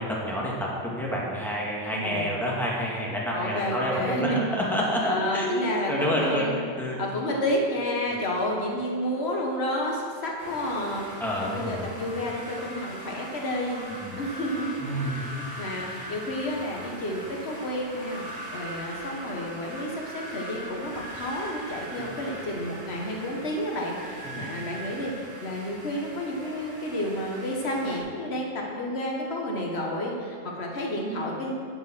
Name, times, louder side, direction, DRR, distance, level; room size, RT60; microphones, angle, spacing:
voice 1, 0.0-6.5 6.8-7.0 11.2-11.8 13.9-14.2 14.8-15.3 24.2-24.5, equal, ahead, -4 dB, 1.9 m, -28 dB
voice 2, 1.9-2.3 3.3-4.5 5.0-6.5 7.0-11.0 11.4-31.5, left 1 dB, 85° left, -1 dB, 1.6 m, -31 dB
sound 1, 10.4-28.0, right 1 dB, 45° right, 2.3 m, -40 dB
12.0 x 5.5 x 6.1 m, 2.1 s
omnidirectional pair, 1.1 m